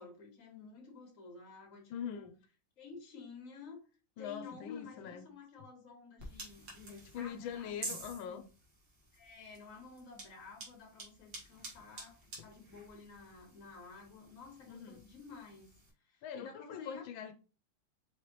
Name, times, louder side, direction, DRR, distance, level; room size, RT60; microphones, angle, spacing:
voice 1, 0.0-2.3 2.8-3.8 4.2-7.9 8.2-8.4 9.1-15.7 16.0-17.1, left 5 dB, 45° left, 1.6 m, -52 dB
voice 2, 1.9-2.3 4.2-5.3 7.1-8.4 12.4-12.5 14.7-15.0 16.2-17.3, left 8 dB, 85° left, 1.3 m, -43 dB
sound 1, 6.2-15.9, right 2 dB, 60° right, 2.1 m, -50 dB
5.2 x 3.2 x 2.9 m
omnidirectional pair, 2.1 m